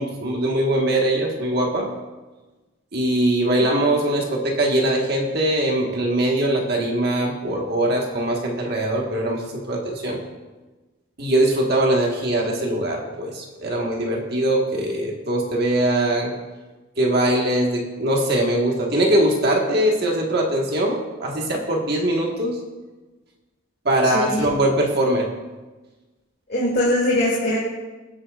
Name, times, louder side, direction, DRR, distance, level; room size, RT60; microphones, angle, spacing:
voice 1, 0.0-1.9 2.9-10.2 11.2-16.4 17.0-22.6 23.8-25.3, right 1 dB, 50° right, 0 dB, 1.6 m, -21 dB
voice 2, 24.1-24.4 26.5-27.6, left 1 dB, 50° left, -6 dB, 2.6 m, -21 dB
22.5 x 8.4 x 2.5 m, 1.2 s
head